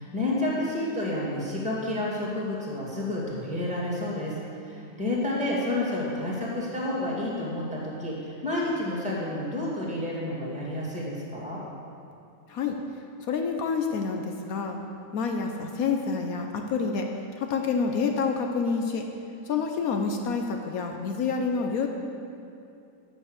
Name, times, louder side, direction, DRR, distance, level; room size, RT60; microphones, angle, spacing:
voice 1, 0.0-11.6, left 1 dB, 5° right, -5 dB, 1.9 m, -30 dB
voice 2, 13.2-14.8 15.1-17.1 17.4-19.0 19.5-21.9, left 5 dB, 65° left, 4 dB, 1.0 m, -28 dB
9.2 x 6.2 x 6.4 m, 2.6 s
omnidirectional pair, 1.9 m